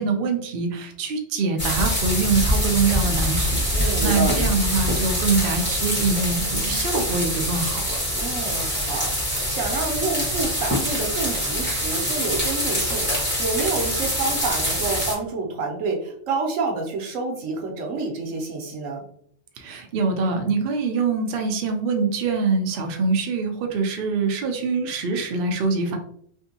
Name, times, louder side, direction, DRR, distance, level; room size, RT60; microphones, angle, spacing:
voice 1, 0.0-8.0 19.6-26.0, right 4 dB, 55° right, 4 dB, 0.6 m, -24 dB
sound 1, 1.6-15.1, equal, 10° left, 1.4 m, -24 dB
voice 2, 3.7-4.4 8.1-19.0, right 3 dB, 85° right, 2 dB, 1.1 m, -28 dB
3.5 x 2.5 x 2.7 m, 0.65 s
omnidirectional pair, 1.3 m